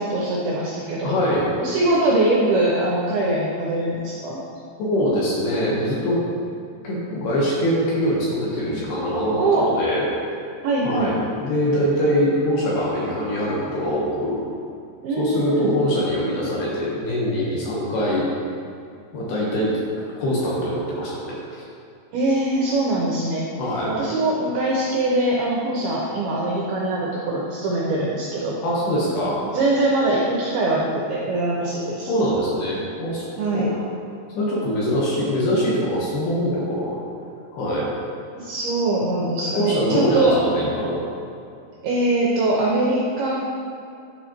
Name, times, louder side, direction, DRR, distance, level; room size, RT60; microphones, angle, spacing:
voice 1, 0.0-1.2 1.6-4.4 9.4-9.7 10.6-11.1 15.0-15.7 22.1-23.5 23.9-28.6 29.5-32.1 33.4-33.7 38.4-40.4 41.8-43.4, right 2 dB, 90° right, -4 dB, 2.2 m, -22 dB
voice 2, 1.0-1.5 4.9-6.2 6.8-10.0 10.8-14.4 15.1-18.3 19.1-19.7 20.2-21.6 23.6-23.9 28.6-29.4 31.6-31.7 32.0-33.3 33.5-33.8 34.3-37.0 37.5-37.9 39.5-41.0, equal, 70° left, -6 dB, 2.7 m, -23 dB
10.5 x 4.9 x 2.9 m, 2.6 s
omnidirectional pair, 5.4 m